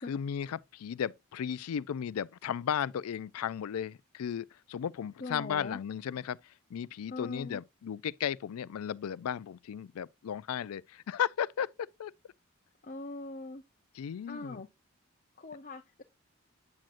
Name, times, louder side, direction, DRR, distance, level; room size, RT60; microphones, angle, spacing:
voice 1, 0.1-6.4 6.7-12.1 13.9-14.6, left 8 dB, 90° left, 0.4 m, -35 dB
voice 2, 5.2-5.8 7.1-7.6 12.8-13.6 14.3-14.7 15.4-16.0, left 3 dB, 40° left, 0.6 m, -41 dB
8.7 x 7.6 x 2.5 m
head